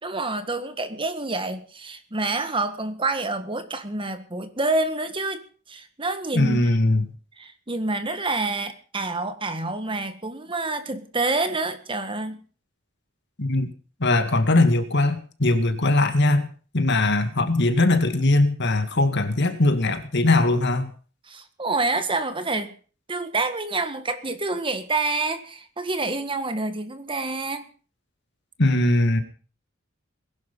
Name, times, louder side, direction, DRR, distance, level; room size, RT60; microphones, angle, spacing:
voice 1, 0.0-6.6 7.4-12.4 21.3-22.7 23.1-27.7, right 3 dB, 25° right, 10 dB, 1.7 m, -27 dB
voice 2, 6.3-7.1 13.4-13.7 14.0-16.5 16.7-20.9 28.6-29.2, left 2 dB, 60° left, 8 dB, 2.3 m, -20 dB
21.0 x 11.5 x 5.5 m, 0.40 s
head